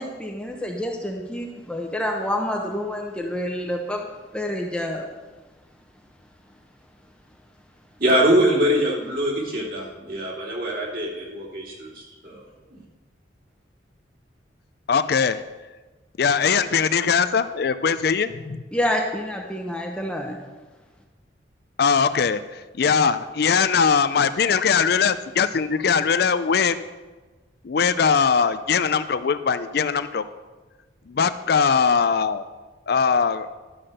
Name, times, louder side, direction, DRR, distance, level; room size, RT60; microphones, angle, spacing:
voice 1, 0.0-4.1 4.3-5.1 18.7-20.4, left 1 dB, 5° left, 1 dB, 0.8 m, -28 dB
voice 2, 8.0-12.4 12.7-12.8, equal, 50° right, -3 dB, 2.9 m, -23 dB
voice 3, 14.9-15.4 16.2-18.6 21.8-26.8 27.6-30.2 31.1-32.4 32.9-33.5, left 6 dB, 55° left, 13 dB, 0.4 m, -21 dB
12.0 x 5.8 x 6.5 m, 1.2 s
head